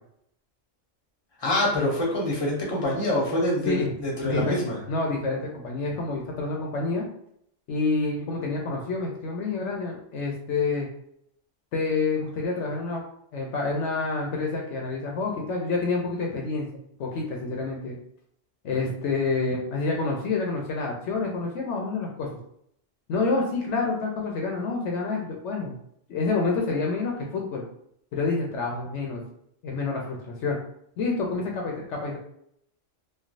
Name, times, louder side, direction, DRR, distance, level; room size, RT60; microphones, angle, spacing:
voice 1, 1.4-4.8, left 1 dB, 25° left, -2 dB, 0.7 m, -25 dB
voice 2, 4.2-4.6 4.9-7.0 7.7-10.9 11.7-13.0 13.3-16.7 17.0-18.0 18.6-22.3 23.1-25.8 26.1-27.6 28.1-29.2 29.6-30.6 31.0-32.2, left 3 dB, 70° left, 0 dB, 0.8 m, -28 dB
3.2 x 2.3 x 2.5 m, 0.70 s
omnidirectional pair, 1.3 m